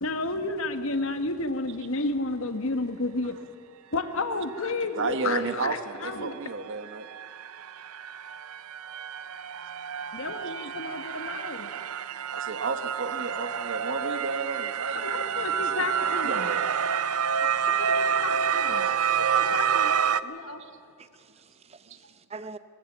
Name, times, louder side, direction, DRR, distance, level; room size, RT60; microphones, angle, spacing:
voice 1, 0.0-3.4 3.9-6.3 10.1-11.7 14.9-16.5 17.7-18.9 19.3-20.6, left 2 dB, 65° left, 8 dB, 1.4 m, -31 dB
voice 2, 5.0-7.1 12.3-15.2 15.7-15.9 16.2-16.6 20.6-20.7 21.9-22.0, right 4 dB, 55° right, 10 dB, 1.2 m, -32 dB
sound 1, 5.7-5.8 6.1-20.2, right 7 dB, 75° right, 0.6 m, -28 dB
voice 3, 17.7-18.1 21.0-22.6, right 3 dB, 30° right, 12 dB, 0.8 m, -45 dB
21.0 x 19.5 x 7.4 m, 2.4 s
head